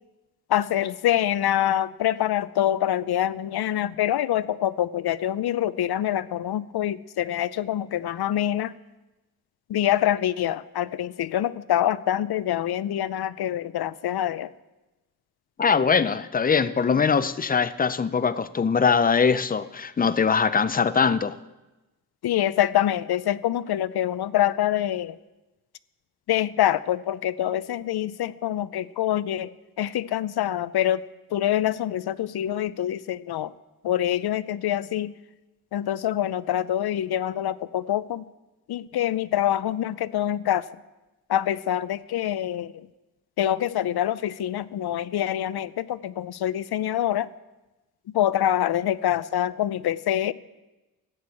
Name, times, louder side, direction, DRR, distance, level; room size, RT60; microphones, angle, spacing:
voice 1, 0.5-8.7 9.7-14.5 16.9-17.0 22.2-25.1 26.3-29.5 29.8-31.0 31.3-33.5 33.8-35.1 35.7-38.2 38.7-40.7 41.3-42.7 43.4-47.3 48.1-50.3, left 12 dB, 80° left, 0.6 m, -25 dB
voice 2, 15.6-21.4, left 5 dB, 25° left, 0.5 m, -22 dB
14.0 x 8.0 x 8.5 m
wide cardioid pair, 155°, 38 cm